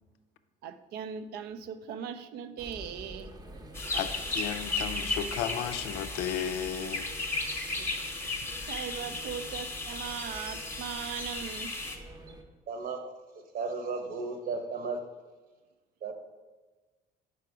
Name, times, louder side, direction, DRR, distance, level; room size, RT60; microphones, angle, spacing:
voice 1, 0.6-3.4 7.8-8.0 8.7-11.8, right 8 dB, 75° right, 11 dB, 0.4 m, -39 dB
sound 1, 2.6-12.4, right 1 dB, 25° right, 0.7 m, -46 dB
sound 2, 3.7-12.0, left 3 dB, 15° left, 0.8 m, -35 dB
voice 2, 3.9-7.1, left 9 dB, 90° left, 10 dB, 0.4 m, -34 dB
voice 3, 12.7-13.0 13.5-15.0 16.0-16.1, right 4 dB, 60° right, 5 dB, 1.0 m, -34 dB
4.9 x 4.8 x 4.7 m, 1.2 s
cardioid pair, 110°, 17 cm